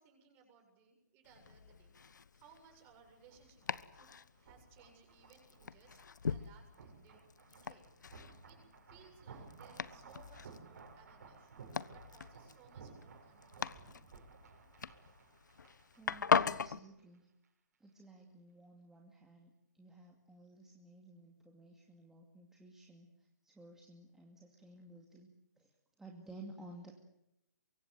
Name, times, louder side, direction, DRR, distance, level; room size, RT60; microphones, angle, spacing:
voice 1, 0.0-1.9 2.3-6.0 6.3-7.2 7.5-7.9 8.5-11.5 11.9-13.9, right 6 dB, 25° right, 4 dB, 7.5 m, -64 dB
Domestic sounds home sounds, 1.2-16.8, left 6 dB, 75° left, 1.2 m, -40 dB
sound 1, 2.9-16.7 17.0-17.2, right 5 dB, 60° right, 6.6 m, -57 dB
voice 2, 16.0-17.3 17.8-25.3 25.6-25.7 26.0-27.0, right 2 dB, 5° right, 0 dB, 2.4 m, -55 dB
24.5 x 23.5 x 7.9 m, 0.84 s
hypercardioid pair, 155°, 10 cm